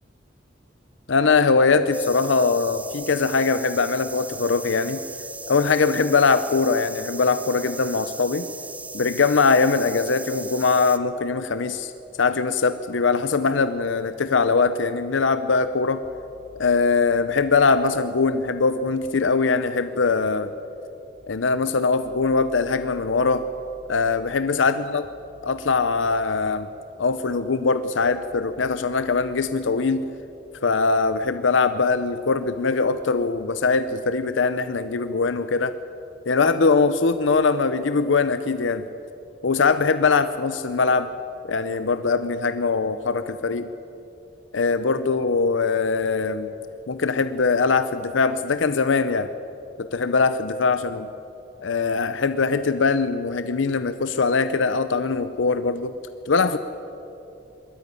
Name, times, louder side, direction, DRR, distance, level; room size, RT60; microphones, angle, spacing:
voice 1, 1.1-5.0 5.5-8.5 8.9-11.9 12.2-16.0 16.6-20.5 21.3-23.5 23.9-25.0 25.4-26.7 27.0-30.0 30.6-35.7 36.3-38.9 39.4-41.1 41.4-43.7 44.5-46.5 46.9-49.3 49.8-51.1 51.6-55.9 56.3-56.6, left 4 dB, 90° left, 11 dB, 0.7 m, -22 dB
sound 1, 1.9-11.0, right 3 dB, 10° right, 0.6 m, -38 dB
sound 2, 16.0-33.2, left 1 dB, 45° right, 5.0 m, -54 dB
21.5 x 13.5 x 9.9 m, 2.9 s
head